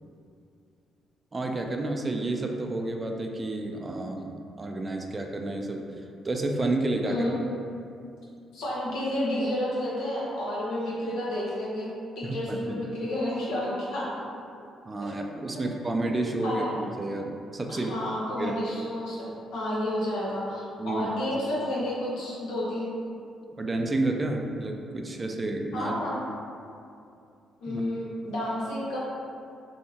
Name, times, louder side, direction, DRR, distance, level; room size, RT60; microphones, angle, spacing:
voice 1, 1.3-5.9 6.2-7.2 12.2-12.8 14.8-18.1 18.4-18.5 20.8-21.1 23.6-25.9 27.7-27.8, right 2 dB, 25° right, 2 dB, 0.3 m, -30 dB
voice 2, 7.0-7.3 8.5-14.1 15.0-15.1 15.5-15.7 16.4-16.7 17.7-22.9 25.7-26.2 27.6-29.0, left 1 dB, 85° left, -7 dB, 0.9 m, -31 dB
3.5 x 2.6 x 2.7 m, 2.5 s
cardioid pair, 90°, 0 cm